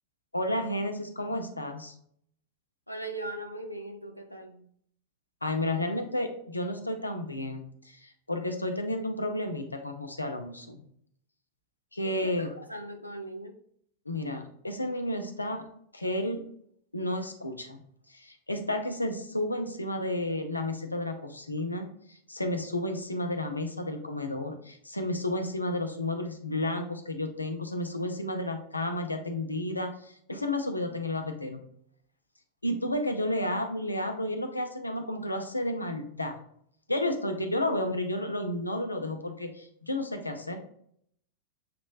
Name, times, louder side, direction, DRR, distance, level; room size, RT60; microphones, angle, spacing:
voice 1, 0.3-1.9 5.4-10.8 11.9-12.6 14.1-15.6 15.9-16.4 16.9-17.8 18.1-31.6 32.6-36.4 36.9-40.6, left 1 dB, 85° left, 0.7 m, -32 dB
voice 2, 2.9-4.7 12.0-13.6, right 1 dB, 90° right, 0.6 m, -39 dB
6.8 x 3.1 x 2.3 m
figure-of-eight pair, 90°, 0 cm